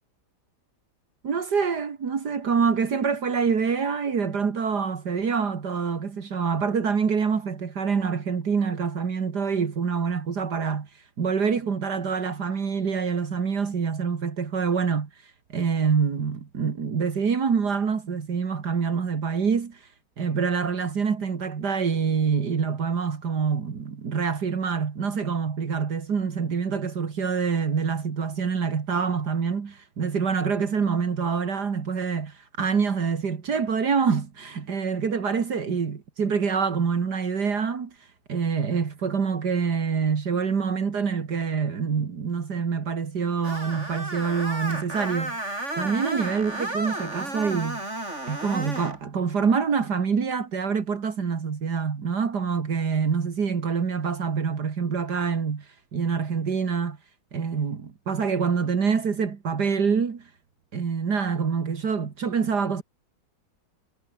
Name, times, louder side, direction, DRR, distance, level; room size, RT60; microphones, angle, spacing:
voice 1, 1.2-10.9 11.2-15.1 15.5-19.8 20.2-37.9 38.3-45.4 45.8-47.9 48.3-55.7 55.9-57.0 57.3-60.3 60.7-62.8, right 6 dB, 70° right, 2.6 m, -26 dB
Screech, 43.4-49.0, right 1 dB, 40° right, 7.8 m, -33 dB
omnidirectional pair, 1.8 m